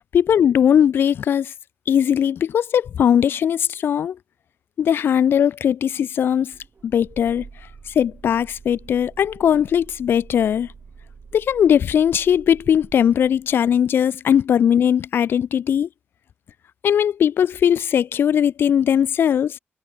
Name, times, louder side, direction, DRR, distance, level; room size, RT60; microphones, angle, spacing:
voice 1, 0.1-1.5 1.9-4.2 4.8-6.5 6.8-7.5 7.9-10.7 11.3-15.9 16.8-19.6, left 9 dB, 65° left, 0.3 m, -19 dB
sound 1, 6.4-13.8, right 5 dB, 40° right, 3.5 m, -46 dB
wide cardioid pair, 145°, 4 cm